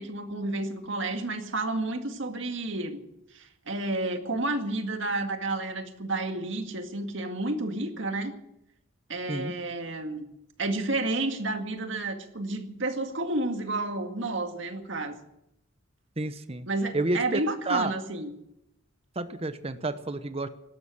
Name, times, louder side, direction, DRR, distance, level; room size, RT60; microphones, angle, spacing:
voice 1, 0.0-3.0 3.3-8.3 9.1-10.2 10.6-15.2 16.7-18.3, right 2 dB, 65° right, 6 dB, 2.0 m, -31 dB
voice 2, 16.2-16.7 16.9-17.4 17.7-17.9 19.2-20.5, right 2 dB, 30° right, 11 dB, 0.9 m, -30 dB
17.5 x 13.0 x 6.2 m, 0.81 s
head